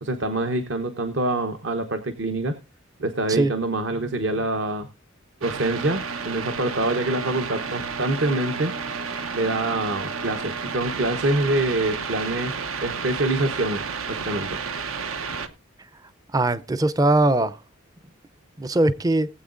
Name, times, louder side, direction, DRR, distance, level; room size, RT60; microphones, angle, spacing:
voice 1, 0.0-2.5 3.0-4.9 5.4-8.7 9.3-13.8 14.1-14.6, right 2 dB, 60° right, 0.9 m, -25 dB
sound 1, 5.4-15.5, right 5 dB, 85° right, 1.0 m, -31 dB
voice 2, 16.3-17.6 18.6-19.3, right 2 dB, 15° right, 0.5 m, -20 dB
20.0 x 7.9 x 2.5 m
head